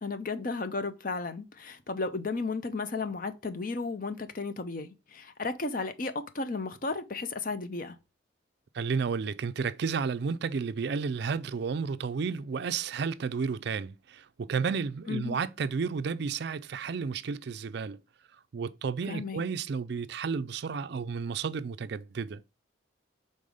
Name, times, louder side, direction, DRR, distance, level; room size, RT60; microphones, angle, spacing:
voice 1, 0.0-8.0 15.1-15.4 19.1-19.4, left 3 dB, 45° left, 0.7 m, -34 dB
voice 2, 8.7-18.0 18.5-22.4, right 5 dB, 55° right, 0.4 m, -32 dB
5.4 x 4.1 x 4.9 m
head